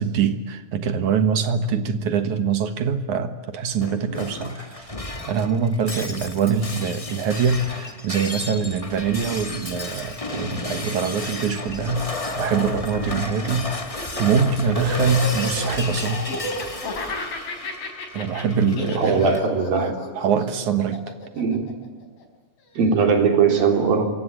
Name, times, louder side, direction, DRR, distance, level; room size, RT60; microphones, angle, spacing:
voice 1, 0.0-4.9 5.3-16.3 18.1-19.4 19.8-21.1, right 5 dB, 65° right, 10 dB, 2.7 m, -24 dB
Shatter, 3.8-19.4, left 2 dB, 30° left, 0.5 m, -33 dB
Laughter, 13.8-22.2, left 1 dB, 85° left, 6.3 m, -32 dB
voice 2, 19.0-19.9 21.3-21.7 22.8-24.1, right 5 dB, 90° right, 5 dB, 5.3 m, -19 dB
26.0 x 24.5 x 8.8 m, 1.2 s
omnidirectional pair, 4.0 m